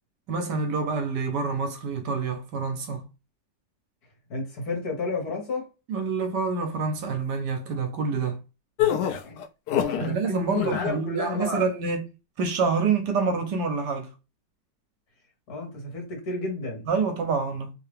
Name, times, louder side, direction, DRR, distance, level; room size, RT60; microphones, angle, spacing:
voice 1, 0.3-3.0 5.9-8.4 10.0-12.0 12.4-14.1 16.9-17.7, right 4 dB, 70° right, 1.2 m, -27 dB
voice 2, 4.3-5.7 9.2-9.4 9.7-11.7 15.5-16.9, left 3 dB, 55° left, 1.9 m, -32 dB
sound 1, 8.8-10.1 10.5-10.9, left 10 dB, 75° left, 1.1 m, -25 dB
3.5 x 2.8 x 3.2 m
omnidirectional pair, 2.0 m